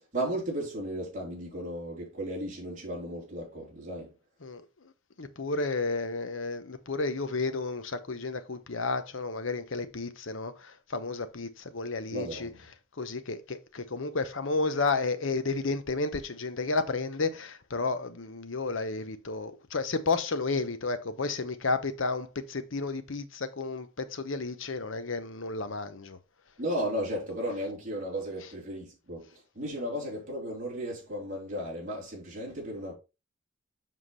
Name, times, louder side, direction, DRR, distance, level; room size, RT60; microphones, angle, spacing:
voice 1, 0.1-4.1 12.1-12.6 26.6-29.3 29.5-32.9, equal, 40° right, 3.5 m, -35 dB
voice 2, 4.4-4.9 5.2-12.5 13.0-26.2, left 3 dB, 65° left, 0.9 m, -32 dB
7.5 x 5.9 x 3.2 m
head